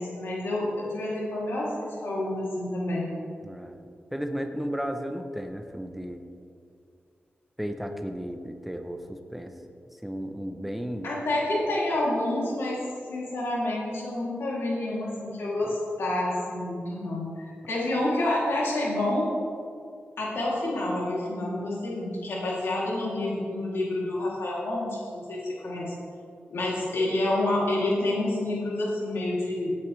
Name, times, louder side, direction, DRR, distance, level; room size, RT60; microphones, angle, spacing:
voice 1, 0.0-3.1 11.0-12.8 13.1-19.3 20.2-25.9 26.5-29.7, left 1 dB, 90° left, -5 dB, 3.1 m, -28 dB
voice 2, 3.4-3.8 4.1-6.2 7.6-9.5 10.0-11.1, equal, 5° right, 5 dB, 0.9 m, -34 dB
16.5 x 9.5 x 3.4 m, 2.4 s
wide cardioid pair, 105°, 4 cm